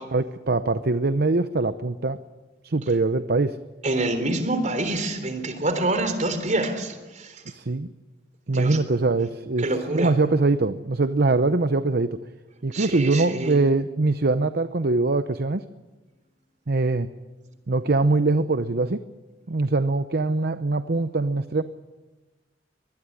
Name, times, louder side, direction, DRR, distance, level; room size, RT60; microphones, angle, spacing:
voice 1, 0.1-2.2 2.6-3.6 7.5-7.9 8.5-12.2 12.6-15.6 16.7-17.1 17.7-19.0 19.5-21.6, right 3 dB, 60° right, 12 dB, 0.8 m, -23 dB
voice 2, 3.8-7.4 8.5-8.8 9.6-10.1 12.7-13.6, right 2 dB, 40° right, 9 dB, 3.6 m, -26 dB
24.0 x 20.5 x 9.8 m, 1.2 s
head